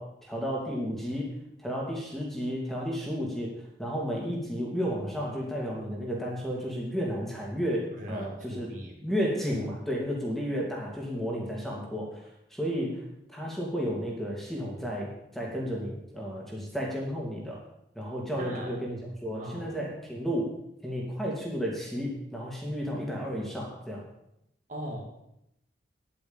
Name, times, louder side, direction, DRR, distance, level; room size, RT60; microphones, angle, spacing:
voice 1, 0.0-3.5 3.8-8.7 9.0-17.6 17.9-20.5 20.8-24.0, equal, ahead, -3 dB, 2.7 m, -32 dB
voice 2, 7.9-9.0 18.4-18.8 19.4-19.8 24.7-25.1, right 1 dB, 45° right, -1 dB, 2.3 m, -39 dB
10.5 x 9.1 x 7.3 m, 0.81 s
head